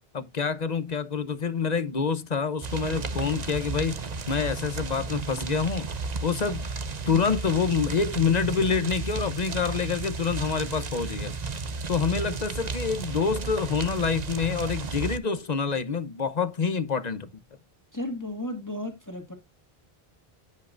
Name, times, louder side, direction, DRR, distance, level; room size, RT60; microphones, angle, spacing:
voice 1, 0.1-5.9 6.2-6.6 7.1-11.3 11.9-17.3, left 5 dB, 45° left, 1.0 m, -27 dB
sound 1, 2.6-15.2, right 4 dB, 45° right, 0.9 m, -33 dB
voice 2, 17.9-19.3, left 1 dB, 15° left, 2.0 m, -34 dB
16.0 x 5.6 x 2.6 m
omnidirectional pair, 1.0 m